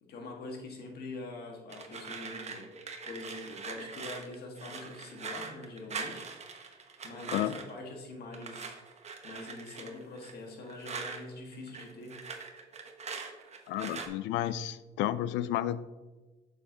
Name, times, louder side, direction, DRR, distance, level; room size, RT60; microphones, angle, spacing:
voice 1, 0.0-2.7 3.1-8.8 9.2-12.2, left 2 dB, 60° left, 1 dB, 1.7 m, -44 dB
sound 1, 1.7-7.8 8.3-11.2 11.5-14.1, right 5 dB, 35° right, 1.0 m, -42 dB
voice 2, 13.7-15.8, left 12 dB, 75° left, 16 dB, 0.4 m, -31 dB
7.1 x 6.7 x 2.8 m, 1.2 s
supercardioid pair, 80°, 19 cm